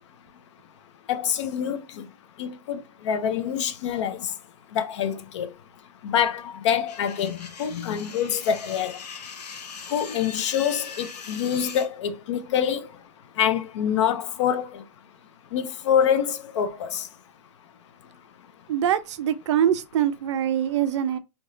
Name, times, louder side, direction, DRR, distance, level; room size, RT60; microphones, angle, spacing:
voice 1, 1.1-2.1 2.4-4.3 4.7-5.5 6.0-9.0 9.9-12.9 13.4-14.8 15.5-17.0, left 8 dB, 45° left, 0.5 m, -26 dB
sound 1, 6.9-11.9, left 6 dB, 70° left, 1.0 m, -40 dB
voice 2, 18.7-21.2, right 10 dB, 45° right, 0.5 m, -24 dB
3.5 x 2.8 x 2.6 m
hypercardioid pair, 170°, 21 cm